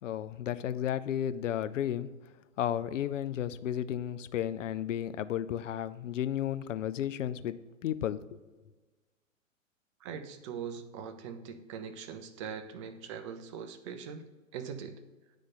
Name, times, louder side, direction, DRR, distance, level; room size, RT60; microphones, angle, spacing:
voice 1, 0.0-2.1 2.6-7.6 7.8-8.4, left 10 dB, 70° left, 13 dB, 0.5 m, -33 dB
voice 2, 10.0-14.3 14.5-15.0, right 7 dB, 25° right, 8 dB, 0.4 m, -41 dB
9.5 x 3.3 x 4.1 m, 1.3 s
figure-of-eight pair, 115°, 40 cm